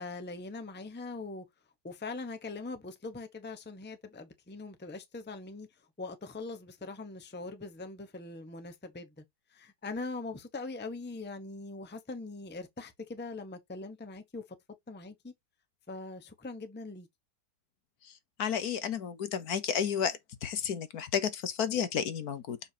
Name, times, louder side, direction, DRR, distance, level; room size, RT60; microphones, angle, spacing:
voice 1, 0.0-1.4 1.8-9.2 9.5-14.4 14.9-15.3 15.9-17.1, left 3 dB, 10° left, 0.8 m, -42 dB
voice 2, 18.4-22.6, left 8 dB, 65° left, 1.4 m, -32 dB
6.8 x 5.2 x 2.8 m
omnidirectional pair, 1.8 m